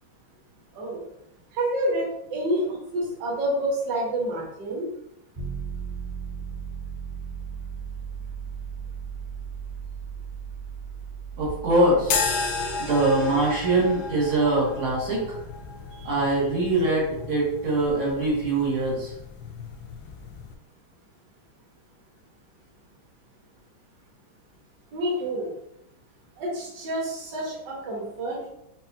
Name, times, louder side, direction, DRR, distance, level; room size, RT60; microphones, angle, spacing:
voice 1, 0.7-1.0 1.5-4.9 15.9-16.1 24.9-25.5 26.4-28.5, right 1 dB, 60° right, -4 dB, 1.7 m, -28 dB
sound 1, 5.3-17.2, right 6 dB, 35° right, 0.8 m, -38 dB
voice 2, 11.4-12.2 12.8-15.2 16.1-19.1, right 2 dB, 85° right, -6 dB, 2.3 m, -23 dB
sound 2, 12.0-20.5, left 5 dB, 75° left, 0.9 m, -33 dB
6.0 x 2.3 x 2.7 m, 0.82 s
omnidirectional pair, 2.3 m